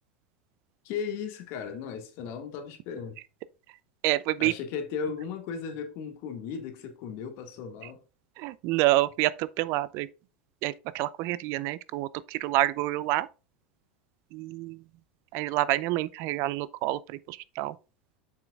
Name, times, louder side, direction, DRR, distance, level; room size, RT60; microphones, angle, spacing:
voice 1, 0.8-3.2 4.4-8.0, left 6 dB, 55° left, 1.9 m, -36 dB
voice 2, 4.0-4.5 8.4-10.1 10.6-13.3 14.3-14.8 15.3-17.8, right 17 dB, 55° right, 0.5 m, -28 dB
7.5 x 5.9 x 2.4 m
hypercardioid pair, 85°, 6 cm